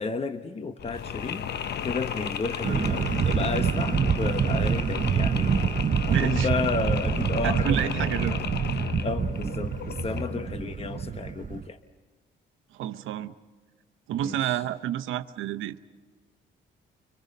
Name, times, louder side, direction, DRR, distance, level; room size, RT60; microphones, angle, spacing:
voice 1, 0.0-1.5 1.8-5.7 6.1-8.5 9.0-11.8 14.1-14.6, left 4 dB, 30° left, 8 dB, 1.1 m, -32 dB
Mechanisms, 0.8-10.5, left 7 dB, 55° left, 0.8 m, -34 dB
sound 1, 0.9-6.0 6.3-6.4, left 3 dB, 80° left, 4.5 m, -56 dB
sound 2, 2.6-11.6, right 7 dB, 40° right, 0.8 m, -27 dB
voice 2, 6.1-6.5 7.4-8.4 12.7-13.3 14.1-15.8, right 11 dB, 85° right, 10 dB, 0.9 m, -29 dB
29.5 x 25.0 x 5.4 m, 1.4 s
cardioid pair, 90°, 20 cm